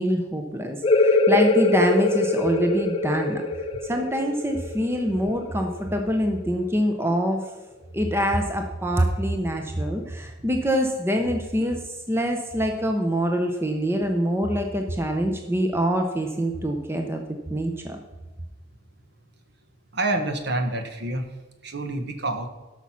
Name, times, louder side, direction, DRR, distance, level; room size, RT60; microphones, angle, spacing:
voice 1, 0.0-3.4 3.8-7.5 7.9-17.2 17.5-18.0, equal, 10° right, 4 dB, 0.7 m, -25 dB
sound 1, 0.8-6.2, left 3 dB, 25° left, 0.6 m, -23 dB
voice 2, 19.9-21.2 21.6-22.5, right 2 dB, 55° right, 6 dB, 1.3 m, -27 dB
12.5 x 6.1 x 5.8 m, 1.2 s
head